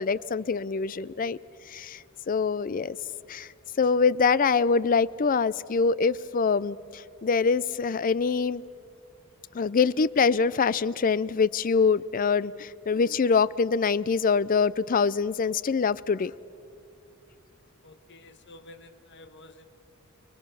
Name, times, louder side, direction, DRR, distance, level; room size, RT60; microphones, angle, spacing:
voice 1, 0.0-1.4 1.7-3.0 3.3-3.5 3.8-8.6 9.5-16.3, left 5 dB, 40° left, 19 dB, 0.4 m, -24 dB
voice 2, 17.8-19.7, left 2 dB, 55° left, 9 dB, 1.4 m, -50 dB
29.0 x 20.5 x 6.2 m, 2.7 s
head